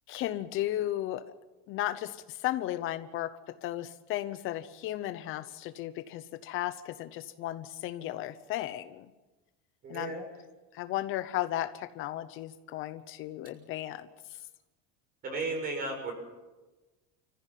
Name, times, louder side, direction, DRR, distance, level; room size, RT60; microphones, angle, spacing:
voice 1, 0.1-1.2 1.7-3.3 3.6-9.1 9.9-10.2 10.7-14.1, left 14 dB, 40° left, 11 dB, 0.9 m, -35 dB
voice 2, 9.8-10.2 15.2-16.1, right 3 dB, 30° right, 4 dB, 6.9 m, -34 dB
30.0 x 15.0 x 9.3 m, 1.2 s
cardioid pair, 170°, 31 cm